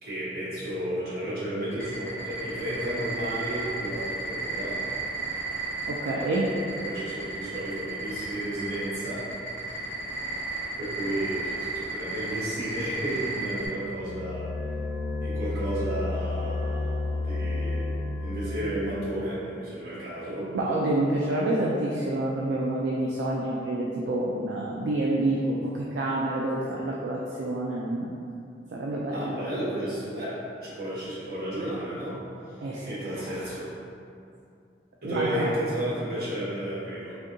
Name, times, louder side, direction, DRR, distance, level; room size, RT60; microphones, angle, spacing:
voice 1, 0.0-4.8 6.4-6.5 6.8-9.2 9.7-9.8 10.8-14.5 15.2-20.5 29.1-32.2 32.9-33.7 35.0-37.2, right 1 dB, 55° right, -10 dB, 1.2 m, -33 dB
sound 1, 1.7-13.7, right 3 dB, 10° left, 1.0 m, -33 dB
voice 2, 5.9-6.4 20.5-28.1 28.7-29.4 32.6-33.5 35.0-35.5, right 1 dB, 75° right, -4 dB, 0.3 m, -28 dB
sound 2, 13.8-18.9, left 2 dB, 80° left, 0.5 m, -31 dB
3.4 x 2.7 x 2.6 m, 2.6 s
head